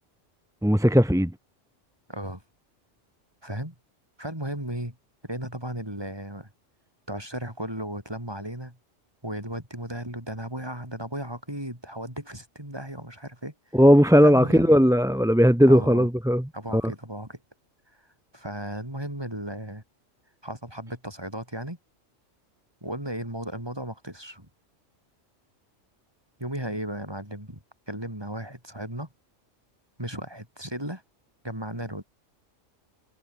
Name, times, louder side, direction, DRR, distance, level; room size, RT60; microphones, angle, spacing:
voice 1, 0.6-1.3 13.7-16.9, equal, 5° right, 0.8 m, -18 dB
voice 2, 2.1-2.4 3.4-3.7 4.2-4.9 5.2-6.5 7.1-8.8 9.2-13.8 14.2-14.7 15.7-16.1 16.5-17.4 18.3-19.8 20.4-21.8 22.8-24.5 26.4-27.6 27.9-29.1 30.0-31.0 31.4-32.0, right 1 dB, 20° right, 6.7 m, -35 dB
omnidirectional pair, 1.3 m